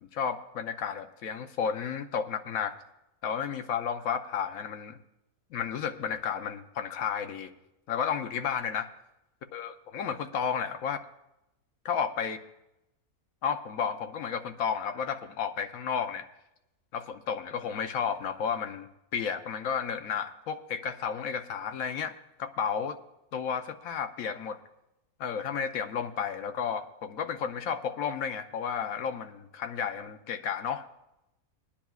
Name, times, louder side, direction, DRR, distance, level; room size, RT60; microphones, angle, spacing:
voice 1, 0.0-2.7 3.2-5.0 5.5-7.5 7.9-8.9 9.5-11.0 11.8-12.4 13.4-16.3 16.9-22.1 22.4-23.0 23.3-24.6 25.2-30.9, left 7 dB, 70° left, 8 dB, 1.1 m, -32 dB
22.0 x 10.0 x 2.4 m, 0.92 s
omnidirectional pair, 1.5 m